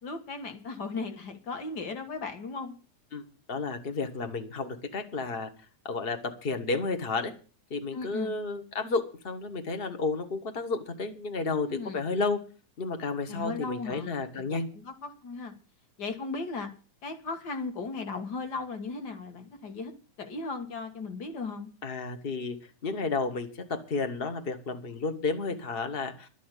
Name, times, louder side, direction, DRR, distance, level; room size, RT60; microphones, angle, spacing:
voice 1, 0.0-2.7 7.9-8.3 11.6-12.0 13.3-14.1 14.5-15.5 16.0-16.7 17.0-19.9 20.2-21.7, left 4 dB, 45° left, 7 dB, 1.5 m, -36 dB
voice 2, 3.5-5.5 5.8-7.3 7.7-12.4 12.8-14.7 21.8-22.6 22.8-26.3, left 4 dB, 90° left, 7 dB, 0.5 m, -32 dB
11.5 x 8.3 x 8.2 m, 0.38 s
omnidirectional pair, 3.4 m